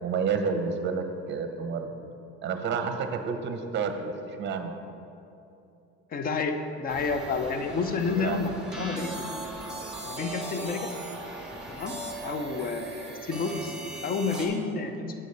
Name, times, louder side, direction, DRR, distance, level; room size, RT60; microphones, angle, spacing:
voice 1, 0.0-2.0 2.4-4.7 8.2-8.4, right 5 dB, 40° right, 6 dB, 0.7 m, -30 dB
voice 2, 6.1-8.5 8.8-9.2 10.0-10.9 11.7-12.0 12.2-13.7 14.0-15.1, left 4 dB, 30° left, 7 dB, 0.6 m, -30 dB
sound 1, 6.9-14.5, right 1 dB, 5° right, 1.1 m, -38 dB
7.4 x 4.0 x 6.6 m, 2.7 s
cardioid pair, 135°, 29 cm